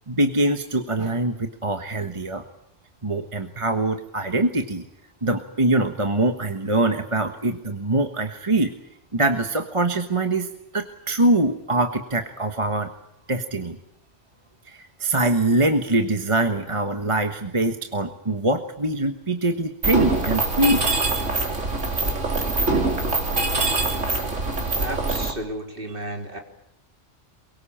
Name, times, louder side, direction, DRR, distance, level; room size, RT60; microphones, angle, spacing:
voice 1, 0.1-2.4 3.0-4.8 5.2-8.7 9.1-12.9 13.3-13.8 14.6-20.9, right 2 dB, 25° right, 6 dB, 1.4 m, -23 dB
Mechanisms, 19.8-25.3, right 2 dB, 85° right, 3.6 m, -23 dB
voice 2, 24.8-26.4, right 1 dB, 45° right, 3 dB, 3.7 m, -33 dB
23.0 x 22.5 x 8.7 m, 0.83 s
omnidirectional pair, 1.2 m